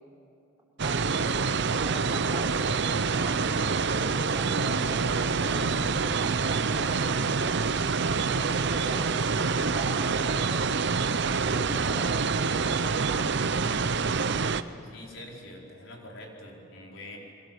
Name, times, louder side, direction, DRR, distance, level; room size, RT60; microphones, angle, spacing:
voice 1, 0.8-7.7 8.2-11.1 11.5-13.5, equal, 10° right, -4 dB, 6.0 m, -41 dB
sound 1, 0.8-14.6, right 4 dB, 65° right, 0.7 m, -26 dB
voice 2, 14.8-17.2, left 1 dB, 85° left, 0 dB, 4.6 m, -45 dB
28.0 x 23.0 x 7.6 m, 2.6 s
head